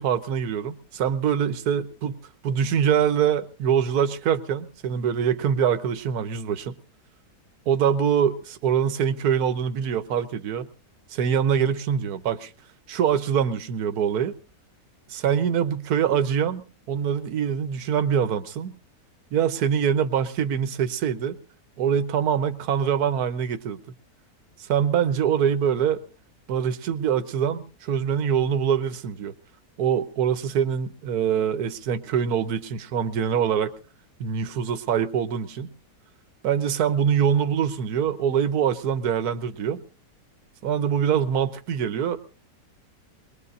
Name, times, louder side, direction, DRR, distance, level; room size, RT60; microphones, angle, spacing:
voice 1, 0.0-2.1 2.4-6.8 7.7-10.7 11.1-12.5 12.9-14.3 15.1-18.8 19.3-21.4 21.8-23.8 24.6-26.0 26.5-29.3 29.8-33.7 34.2-35.7 36.4-39.8 40.6-42.2, right 8 dB, 65° right, 10 dB, 1.4 m, -24 dB
22.0 x 21.5 x 2.7 m, 0.36 s
omnidirectional pair, 1.9 m